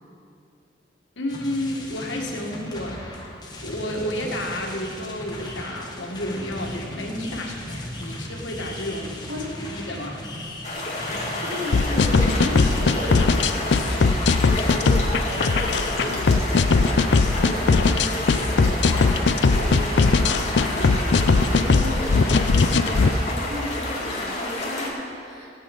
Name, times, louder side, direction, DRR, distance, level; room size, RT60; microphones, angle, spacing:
voice 1, 1.2-3.3 3.6-9.1 9.6-10.3, left 1 dB, 90° left, 1 dB, 1.8 m, -31 dB
sound 1, 1.3-16.1, left 1 dB, 20° left, 1.4 m, -37 dB
voice 2, 9.3-9.7 11.1-13.6 14.1-16.5 17.2-25.5, equal, 75° right, -5 dB, 3.6 m, -34 dB
sound 2, 10.6-24.9, left 2 dB, 40° left, 2.2 m, -30 dB
sound 3, 11.7-23.1, left 4 dB, 70° left, 0.5 m, -19 dB
17.0 x 8.2 x 5.3 m, 2.5 s
head